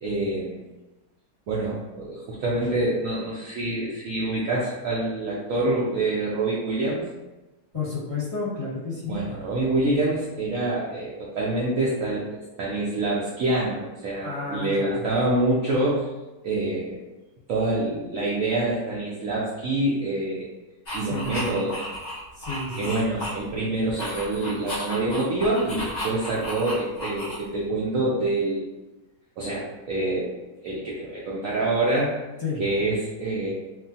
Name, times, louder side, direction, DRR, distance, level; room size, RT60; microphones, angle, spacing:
voice 1, 0.0-0.6 1.5-7.0 9.1-12.2 12.6-16.0 16.4-17.0 17.5-20.5 20.9-21.9 22.8-28.8 29.4-32.2 32.6-33.5, right 2 dB, 85° right, -5 dB, 0.7 m, -26 dB
voice 2, 7.7-9.2 14.1-15.0 21.0-21.5 22.3-23.0 32.4-32.6, left 3 dB, 20° left, -11 dB, 1.3 m, -31 dB
sound 1, 20.9-23.6 23.9-27.7, equal, 65° left, 0.4 m, -34 dB
3.1 x 2.2 x 2.6 m, 1.1 s
omnidirectional pair, 1.9 m